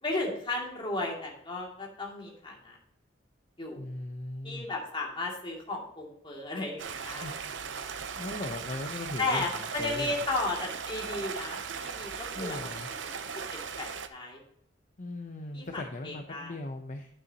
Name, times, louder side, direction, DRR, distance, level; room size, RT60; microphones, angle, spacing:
voice 1, 0.0-2.8 3.6-3.8 4.4-7.3 8.1-8.2 9.2-12.6 13.5-14.4 15.5-16.5, left 2 dB, 25° left, -2 dB, 2.4 m, -34 dB
voice 2, 3.7-4.7 7.2-7.3 8.2-10.1 12.3-12.9 15.0-17.1, left 2 dB, 45° left, 5 dB, 0.7 m, -38 dB
Stream, 6.8-14.1, right 6 dB, 75° right, 0.7 m, -38 dB
9.5 x 8.8 x 2.8 m, 0.73 s
head